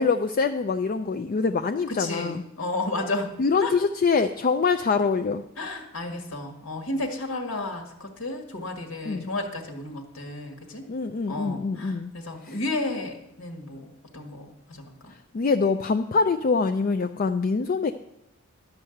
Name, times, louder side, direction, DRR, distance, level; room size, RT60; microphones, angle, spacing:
voice 1, 0.0-2.4 3.4-5.4 9.0-9.3 10.9-12.1 12.4-12.6 15.1-17.9, left 4 dB, 40° left, 7 dB, 0.4 m, -24 dB
voice 2, 1.9-3.3 3.6-3.7 5.6-10.9 11.3-15.1, left 2 dB, 75° left, 4 dB, 1.7 m, -32 dB
12.0 x 5.5 x 7.8 m, 0.82 s
head